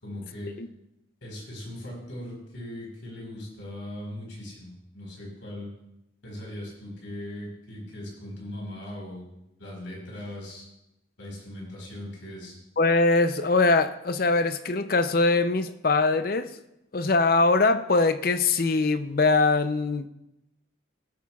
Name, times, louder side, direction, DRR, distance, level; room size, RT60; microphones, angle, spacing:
voice 1, 0.0-0.6 1.2-5.7 6.2-9.2 9.6-10.7 11.2-12.6, left 1 dB, 90° left, 4.4 m, -39 dB
voice 2, 12.8-16.6 16.9-20.1, left 3 dB, 50° left, 0.5 m, -22 dB
18.0 x 8.6 x 2.4 m
head